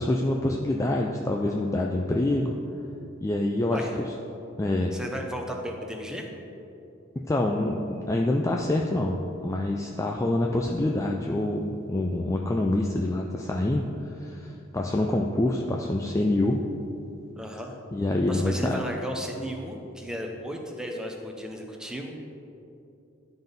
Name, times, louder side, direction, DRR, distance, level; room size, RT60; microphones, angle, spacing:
voice 1, 0.0-2.6 3.2-4.1 4.6-5.0 7.3-16.6 17.9-18.8, left 1 dB, 15° left, 0 dB, 0.3 m, -26 dB
voice 2, 4.9-6.3 17.4-17.8 18.3-22.1, equal, 5° right, 1 dB, 0.7 m, -35 dB
11.5 x 4.0 x 5.2 m, 2.8 s
head